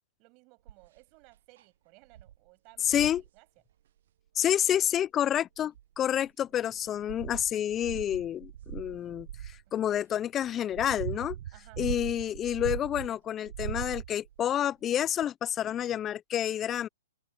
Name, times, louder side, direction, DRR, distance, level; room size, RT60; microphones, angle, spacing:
voice 1, 0.2-3.5 9.7-9.8 11.5-12.1, right 28 dB, 40° right, 7.5 m, -59 dB
sound 1, 0.7-1.0 1.6-1.7 2.1-2.4 2.8-3.3 4.7-4.8 5.6-6.3 6.8-9.6 10.3-13.1 13.4-14.4 15.2-15.3, right 11 dB, 60° right, 0.9 m, -40 dB
voice 2, 2.8-3.2 4.3-11.4 11.8-16.9, left 10 dB, 25° left, 0.8 m, -29 dB
hypercardioid pair, 115°, 0 cm